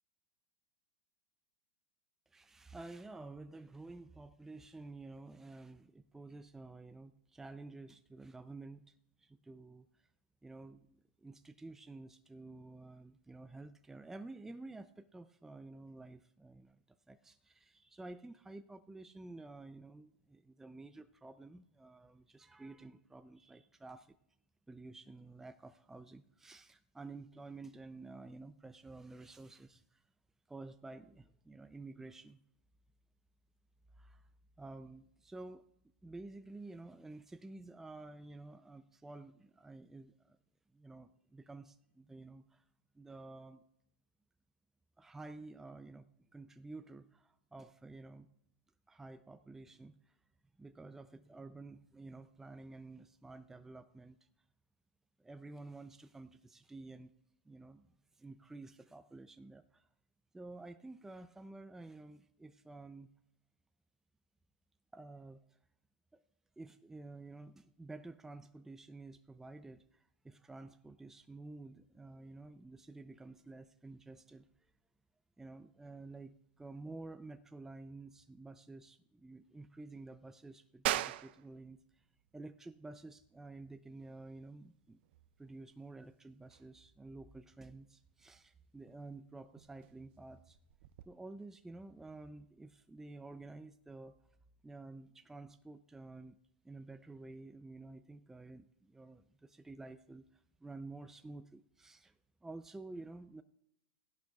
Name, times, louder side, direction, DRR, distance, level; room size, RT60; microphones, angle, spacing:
voice 1, 2.3-10.1 10.4-16.8 17.1-24.2 24.7-30.1 30.5-32.4 33.9-34.3 34.6-35.6 36.0-40.4 40.7-42.7 42.9-43.6 45.0-48.3 48.9-50.2 50.6-54.2 55.2-57.1 57.4-57.9 58.1-59.9 60.3-63.1 64.9-65.6 66.1-66.2 66.6-74.7 75.4-82.1 82.3-85.0 85.4-90.6 91.1-94.2 94.6-96.4 96.6-103.4, right 2 dB, 5° right, 9 dB, 0.5 m, -51 dB
sound 1, 80.9-91.1, right 16 dB, 60° right, 0.4 m, -45 dB
16.5 x 11.5 x 2.4 m, 0.75 s
hypercardioid pair, 120°, 6 cm